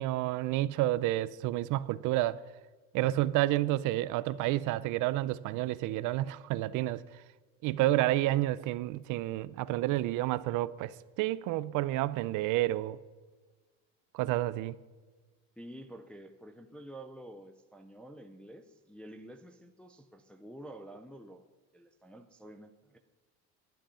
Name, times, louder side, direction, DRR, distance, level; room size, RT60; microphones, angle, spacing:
voice 1, 0.0-2.4 2.9-7.0 7.6-13.0 14.1-14.8, right 16 dB, 55° right, 0.5 m, -30 dB
voice 2, 15.6-21.4 21.7-23.0, right 1 dB, 5° left, 0.3 m, -49 dB
11.5 x 10.5 x 5.5 m
cardioid pair, 160°, 39 cm